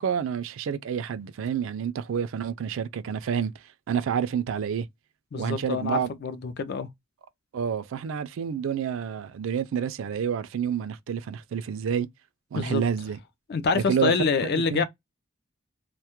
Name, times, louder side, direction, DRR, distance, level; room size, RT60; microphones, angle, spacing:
voice 1, 0.0-3.5 3.9-4.9 5.4-6.1 7.5-12.1 12.5-13.2 13.7-14.8, right 7 dB, 70° right, 0.3 m, -29 dB
voice 2, 5.3-6.9 12.5-12.8 13.5-14.8, left 4 dB, 50° left, 0.4 m, -26 dB
2.1 x 2.0 x 2.8 m
head